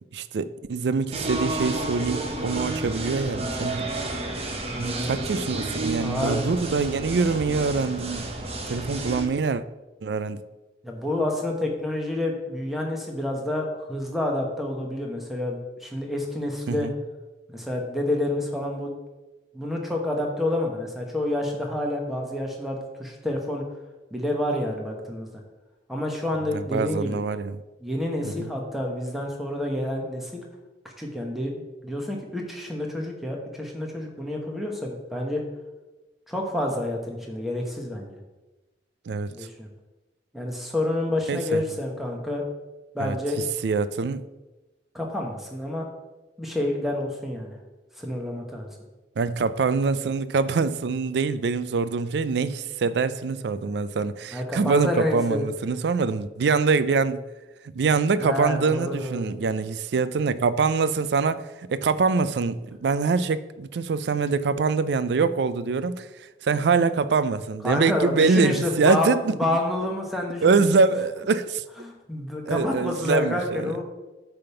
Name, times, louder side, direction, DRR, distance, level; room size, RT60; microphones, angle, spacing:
voice 1, 0.1-3.8 4.8-8.3 8.7-9.6 10.0-10.4 16.7-16.9 26.5-27.6 28.2-28.5 39.1-39.3 41.3-41.6 43.0-44.2 49.2-57.2 57.7-66.1 66.4-69.3 70.4-71.6 72.5-73.7, right 4 dB, 70° right, 0.4 m, -24 dB
sound 1, 1.1-9.3, right 2 dB, 35° right, 1.0 m, -31 dB
voice 2, 4.6-5.1 6.0-6.5 10.8-16.9 17.5-18.9 19.5-23.6 24.1-25.3 25.9-27.2 27.8-30.5 31.0-31.5 31.8-35.4 36.3-38.1 39.3-39.7 40.3-42.4 42.9-43.4 44.9-45.8 46.4-47.5 48.0-48.7 54.3-55.5 58.2-59.2 67.6-70.7 71.8-73.8, left 1 dB, ahead, 1.1 m, -28 dB
8.8 x 3.5 x 5.7 m
head